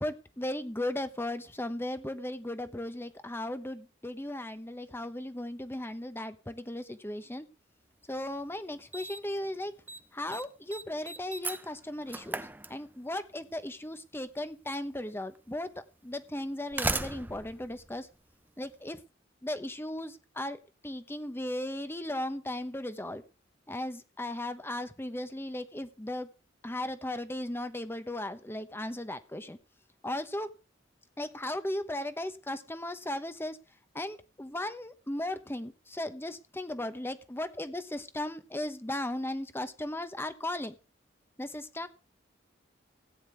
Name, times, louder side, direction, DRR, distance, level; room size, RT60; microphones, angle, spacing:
voice 1, 0.0-7.5 8.1-9.7 10.1-15.7 16.0-18.1 18.6-19.0 19.4-20.6 20.8-23.2 23.7-26.3 26.6-29.6 30.0-30.5 31.2-33.6 33.9-40.7 41.4-41.9, left 1 dB, 15° left, 10 dB, 1.0 m, -36 dB
Slam, 8.1-8.2 8.9-9.4 9.7-10.0 10.3-13.2 14.4-14.5 15.3-15.4 16.4-18.7, right 2 dB, 10° right, 0.6 m, -37 dB
16.5 x 9.6 x 3.5 m, 0.32 s
head